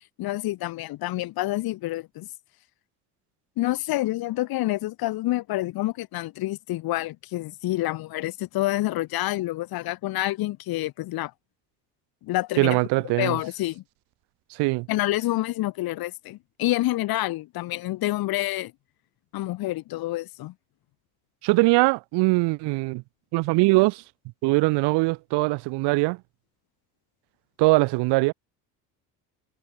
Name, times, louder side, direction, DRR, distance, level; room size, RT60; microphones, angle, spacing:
voice 1, 0.2-2.3 3.6-11.3 12.2-12.8 13.2-13.8 14.9-18.7 19.3-20.5, left 17 dB, 55° left, 0.9 m, -28 dB
voice 2, 12.6-13.4 14.6-14.9 21.4-23.0 23.3-24.0 24.4-26.2 27.6-28.3, right 24 dB, 65° right, 0.8 m, -21 dB
hypercardioid pair, 65°, 44 cm